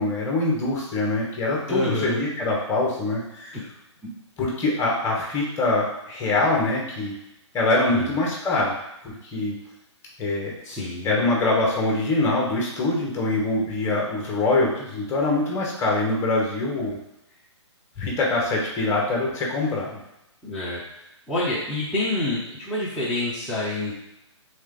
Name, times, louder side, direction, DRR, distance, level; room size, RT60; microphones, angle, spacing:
voice 1, 0.0-3.6 4.4-7.1 7.5-8.8 9.0-9.6 10.2-10.5 11.0-17.0 18.0-20.0, left 2 dB, 15° left, -3 dB, 1.1 m, -24 dB
voice 2, 1.7-2.2 7.9-8.2 10.6-11.3 20.4-20.8 21.3-23.9, left 2 dB, ahead, -12 dB, 0.7 m, -27 dB
3.6 x 3.2 x 3.7 m, 0.86 s
hypercardioid pair, 145°, 16 cm